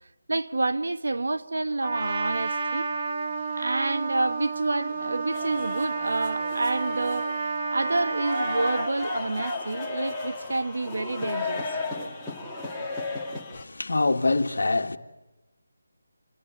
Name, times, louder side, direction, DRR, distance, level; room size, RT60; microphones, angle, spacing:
voice 1, 0.3-2.9 3.5-7.3 7.7-12.1, right 2 dB, 75° right, 1.3 m, -28 dB
Trumpet, 1.8-8.9, right 4 dB, 20° right, 1.0 m, -31 dB
sound 1, 5.3-13.6, left 2 dB, ahead, 1.6 m, -34 dB
voice 2, 13.5-15.0, left 3 dB, 70° left, 1.7 m, -24 dB
27.0 x 22.5 x 9.2 m
figure-of-eight pair, 180°, 0 cm